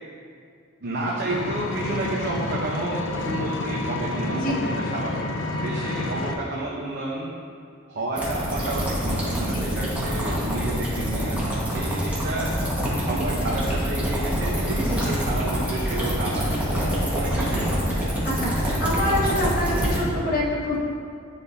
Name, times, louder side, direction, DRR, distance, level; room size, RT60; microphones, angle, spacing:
voice 1, 0.8-5.3 5.5-7.3 7.9-12.5 12.9-17.9, right 1 dB, 50° right, -5 dB, 0.8 m, -31 dB
Engine, 1.3-6.3, left 2 dB, 60° left, 0.5 m, -29 dB
sound 1, 8.2-20.0, equal, 5° right, 1.4 m, -25 dB
voice 2, 18.2-20.8, left 1 dB, 40° left, -7 dB, 1.7 m, -26 dB
10.0 x 5.2 x 2.7 m, 2.3 s
head